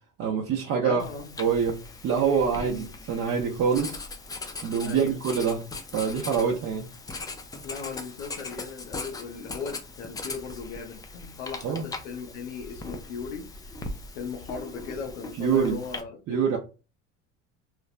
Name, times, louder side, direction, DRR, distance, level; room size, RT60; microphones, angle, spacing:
voice 1, 0.2-1.1 1.4-4.0 4.6-5.7 5.9-6.9 11.6-11.8 15.4-15.8 16.3-16.6, right 6 dB, 40° right, 0.7 m, -25 dB
voice 2, 0.8-1.3 2.5-2.9 4.8-5.2 7.6-13.7 14.1-16.4, left 5 dB, 90° left, 0.7 m, -38 dB
Writing, 1.0-16.0, left 3 dB, 10° left, 0.3 m, -40 dB
3.3 x 2.1 x 2.4 m
supercardioid pair, 90°, 36 cm